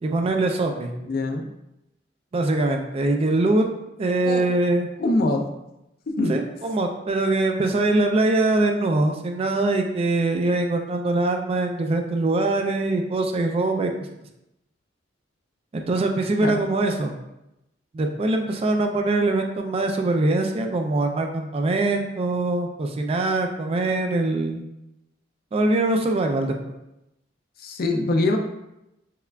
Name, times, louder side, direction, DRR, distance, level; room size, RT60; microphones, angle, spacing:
voice 1, 0.0-0.9 2.3-3.7 4.0-4.9 6.3-13.9 15.7-17.2 17.9-24.6 25.5-26.6, right 2 dB, 30° right, 4 dB, 0.3 m, -23 dB
voice 2, 1.1-1.5 4.2-4.4 5.0-5.5 6.2-6.4 16.4-16.6 27.6-28.4, left 2 dB, 50° left, 4 dB, 0.4 m, -23 dB
5.5 x 2.3 x 2.2 m, 0.90 s
head